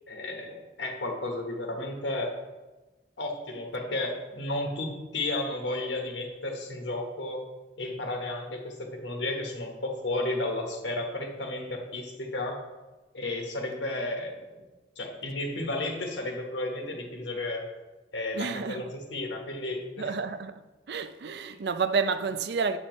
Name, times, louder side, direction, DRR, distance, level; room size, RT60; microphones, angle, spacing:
voice 1, 0.1-2.3 3.2-7.4 7.8-12.6 13.1-14.4 15.0-17.7 18.1-18.8 19.1-20.1 21.5-21.6, left 2 dB, 85° left, 1.3 m, -33 dB
voice 2, 18.3-19.0 20.0-20.6 20.9-22.8, right 5 dB, 65° right, 0.4 m, -30 dB
8.0 x 7.5 x 3.1 m
head